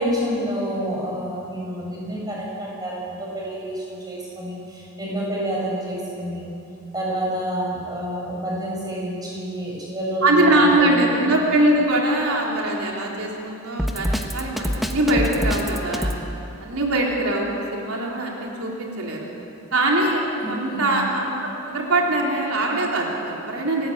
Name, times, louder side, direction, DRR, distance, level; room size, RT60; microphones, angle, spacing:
voice 1, 0.0-6.5 6.9-10.5 10.8-11.3 20.4-21.0, equal, 15° right, -4 dB, 7.2 m, -28 dB
voice 2, 10.2-16.1 16.6-19.3 19.7-23.9, right 1 dB, 85° right, -2 dB, 3.9 m, -22 dB
Drum kit, 13.8-16.2, equal, ahead, 1.4 m, -24 dB
28.5 x 19.0 x 8.9 m, 2.8 s
head